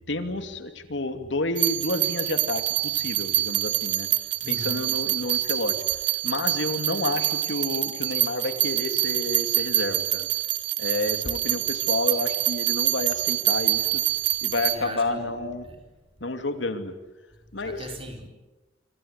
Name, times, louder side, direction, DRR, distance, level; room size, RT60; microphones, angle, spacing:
voice 1, 0.1-4.1 4.5-5.8 6.2-10.3 10.8-14.0 14.4-15.7 16.2-17.0 17.5-17.9, left 2 dB, 75° left, 2.6 m, -30 dB
sound 1, 1.6-14.8, right 14 dB, 75° right, 1.6 m, -26 dB
voice 2, 4.4-4.9 14.7-15.4 15.6-15.8 16.2-16.3 17.5-18.3, right 1 dB, 30° right, 4.6 m, -39 dB
26.0 x 26.0 x 8.3 m
head